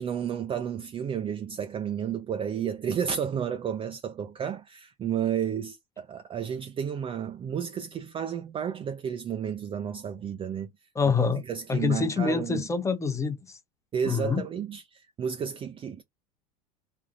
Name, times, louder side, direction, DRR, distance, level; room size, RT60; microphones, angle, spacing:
voice 1, 0.0-10.7 11.4-12.7 13.9-16.0, right 8 dB, 25° right, 0.4 m, -32 dB
voice 2, 11.0-11.4 11.7-13.6 14.0-14.4, left 5 dB, 15° left, 0.8 m, -26 dB
3.4 x 2.5 x 2.6 m
hypercardioid pair, 95°, 21 cm